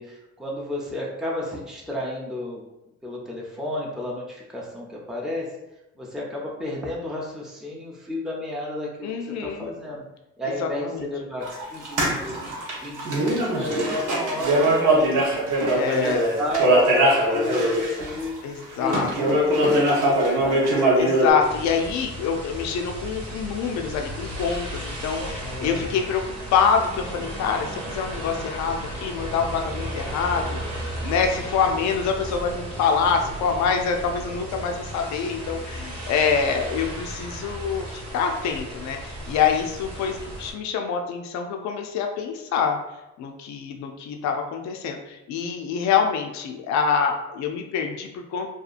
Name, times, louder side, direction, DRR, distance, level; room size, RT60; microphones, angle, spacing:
voice 1, 0.0-2.6 3.0-5.5 6.0-10.0 10.4-15.2 15.6-18.4 18.8-20.7, left 1 dB, ahead, -3 dB, 0.5 m, -32 dB
voice 2, 9.0-9.7 10.6-11.1 15.7-16.2 18.4-19.1 21.0-26.2 26.5-42.8 43.2-48.5, left 6 dB, 65° left, 3 dB, 0.4 m, -25 dB
sound 1, 11.4-18.3 18.7-21.3, right 1 dB, 80° right, 0.8 m, -21 dB
sound 2, 21.4-40.5, right 1 dB, 50° right, 0.9 m, -35 dB
2.7 x 2.3 x 2.4 m, 0.94 s
cardioid pair, 90°, 30 cm